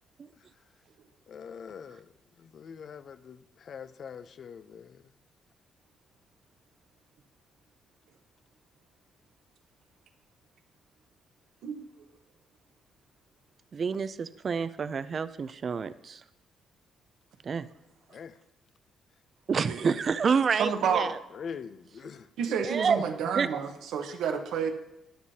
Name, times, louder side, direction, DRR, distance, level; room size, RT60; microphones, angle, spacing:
voice 1, 1.3-2.1 2.4-5.0 18.1-18.4 21.3-22.3, left 6 dB, 55° left, 0.5 m, -43 dB
voice 2, 11.6-11.9 19.6-20.0 20.6-21.1 22.4-24.7, right 7 dB, 80° right, 1.1 m, -30 dB
voice 3, 13.7-16.2 17.4-17.7 19.5-21.2 22.6-23.0 23.4-23.5, right 6 dB, 45° right, 0.4 m, -28 dB
13.5 x 9.9 x 2.8 m
cardioid pair, 90°, 0 cm